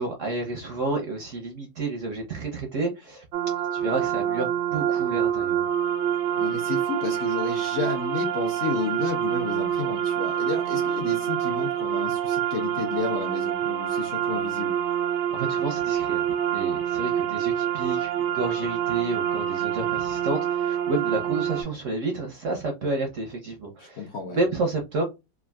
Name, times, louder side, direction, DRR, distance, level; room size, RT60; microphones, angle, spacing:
voice 1, 0.0-3.2 3.7-5.7 15.3-25.0, right 3 dB, 65° right, 0.7 m, -30 dB
sound 1, 3.3-21.6, right 10 dB, 90° right, 1.4 m, -26 dB
voice 2, 6.4-14.8 23.8-24.4, left 5 dB, 75° left, 0.6 m, -32 dB
3.6 x 2.3 x 2.2 m
omnidirectional pair, 2.0 m